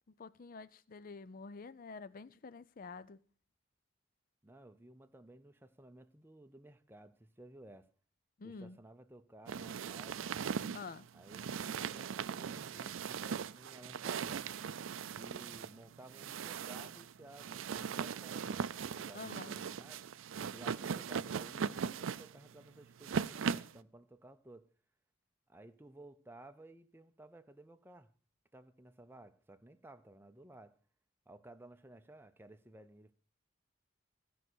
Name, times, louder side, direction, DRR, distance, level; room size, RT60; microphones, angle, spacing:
voice 1, 0.2-3.2 8.4-8.8 10.7-11.1 19.1-19.6, left 4 dB, 45° left, 0.5 m, -48 dB
voice 2, 4.4-7.9 8.4-10.3 11.1-14.5 15.1-20.0 20.4-24.7 25.5-28.1 28.5-30.8 31.3-33.1, right 1 dB, 10° right, 0.6 m, -56 dB
sound 1, 9.5-23.8, right 6 dB, 80° right, 0.4 m, -39 dB
16.0 x 5.6 x 6.2 m
head